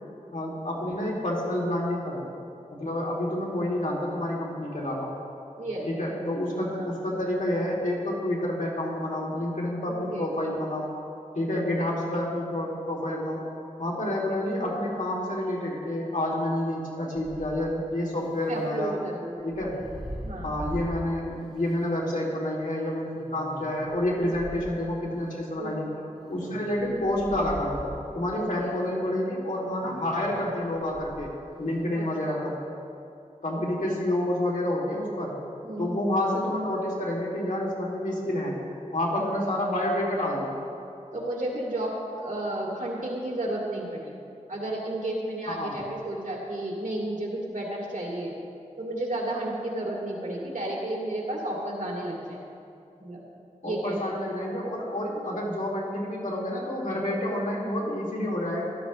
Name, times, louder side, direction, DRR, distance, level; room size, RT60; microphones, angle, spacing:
voice 1, 0.3-2.2 2.8-5.1 5.9-10.9 11.3-13.4 13.8-19.0 19.4-19.9 20.4-25.9 26.3-27.8 28.1-32.6 33.4-35.3 35.8-38.6 38.9-40.6 45.5-45.9 53.6-58.7, left 1 dB, 75° left, -4 dB, 2.7 m, -29 dB
voice 2, 9.9-10.2 11.5-11.8 14.0-14.1 18.5-19.5 20.2-20.5 25.6-26.0 26.5-26.6 28.3-28.4 32.0-32.4 33.8-34.0 35.6-36.1 39.2-39.3 41.1-44.1 44.5-48.3 48.8-52.4 53.0-53.2 53.6-54.1, right 1 dB, 80° right, -4 dB, 2.4 m, -32 dB
sound 1, 17.1-17.7 19.4-21.1 21.7-21.8 23.2-24.7 26.1-28.0 29.8-31.3, equal, ahead, 2.1 m, -41 dB
16.0 x 12.5 x 3.1 m, 2.6 s
wide cardioid pair, 60°, 13 cm